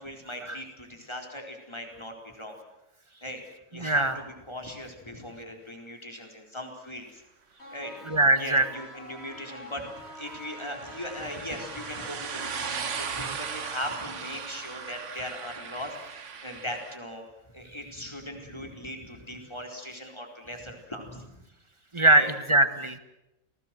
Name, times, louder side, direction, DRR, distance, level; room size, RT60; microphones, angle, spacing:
voice 1, 0.0-2.6 3.2-3.4 3.7-7.2 7.7-7.9 8.4-9.9 10.1-17.3 17.5-21.2 22.1-22.3, left 1 dB, 20° left, 2 dB, 4.4 m, -39 dB
voice 2, 3.8-4.2 8.1-8.7 21.9-23.0, right 2 dB, 20° right, 10 dB, 1.6 m, -22 dB
sound 1, 7.6-13.6, left 1 dB, 50° left, 8.2 m, -46 dB
sound 2, 8.8-17.0, right 6 dB, 60° right, 1.5 m, -38 dB
29.5 x 19.0 x 7.8 m, 0.94 s
omnidirectional pair, 1.4 m